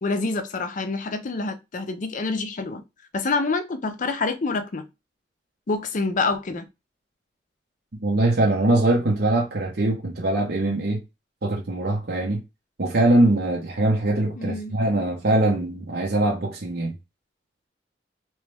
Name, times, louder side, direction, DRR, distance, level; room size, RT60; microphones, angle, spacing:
voice 1, 0.0-2.8 3.1-4.9 5.7-6.7 14.4-14.8, left 3 dB, 45° left, 0.5 m, -27 dB
voice 2, 8.0-11.0 11.4-12.4 12.8-16.9, right 1 dB, 65° right, 0.9 m, -22 dB
3.0 x 3.0 x 3.3 m
head